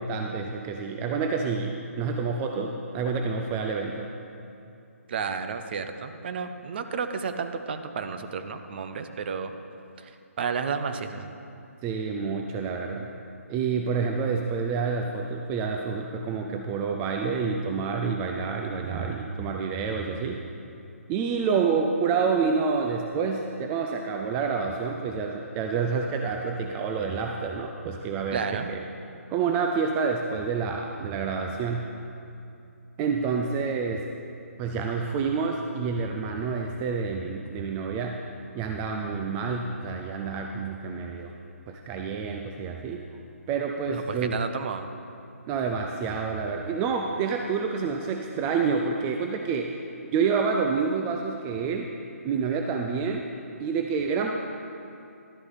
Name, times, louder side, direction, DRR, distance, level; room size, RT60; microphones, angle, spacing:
voice 1, 0.0-4.1 11.8-13.1 13.5-20.4 21.1-28.4 28.7-28.8 29.3-31.8 33.0-34.0 34.6-38.2 38.5-41.3 41.7-43.0 43.5-44.4 45.5-49.8 50.1-51.9 52.2-53.2 53.6-54.3, right 5 dB, 20° right, 2 dB, 0.4 m, -28 dB
voice 2, 5.1-9.5 10.0-10.1 10.4-11.3 28.3-28.7 43.9-44.0 44.3-44.9, right 6 dB, 45° right, 8 dB, 0.8 m, -31 dB
12.5 x 9.5 x 4.1 m, 2.7 s
hypercardioid pair, 150°, 8 cm